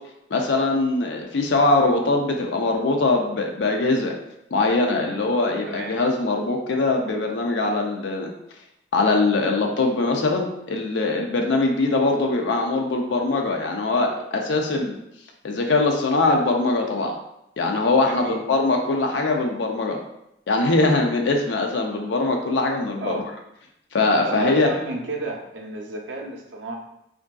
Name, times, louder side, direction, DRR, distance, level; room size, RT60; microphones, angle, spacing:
voice 1, 0.3-4.1 4.5-8.3 8.9-15.0 15.4-17.1 17.6-20.0 20.5-23.2 23.9-24.7, left 3 dB, 80° left, 2 dB, 0.5 m, -22 dB
voice 2, 18.0-18.4 23.0-23.3 24.2-26.8, right 2 dB, 90° right, 1 dB, 0.5 m, -33 dB
3.4 x 2.5 x 2.2 m, 0.82 s
head